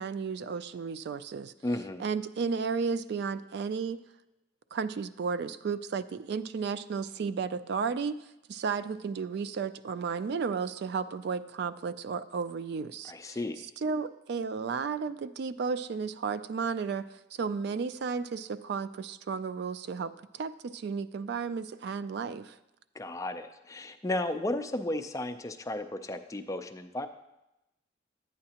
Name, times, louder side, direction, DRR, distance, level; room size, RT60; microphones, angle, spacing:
voice 1, 0.0-1.5 2.0-4.0 4.7-8.2 8.5-13.4 13.8-22.6, right 5 dB, 60° right, 14 dB, 0.3 m, -33 dB
voice 2, 1.6-2.1 13.1-13.6 23.0-27.1, left 1 dB, 15° left, 7 dB, 0.4 m, -34 dB
11.5 x 8.8 x 2.8 m, 0.92 s
head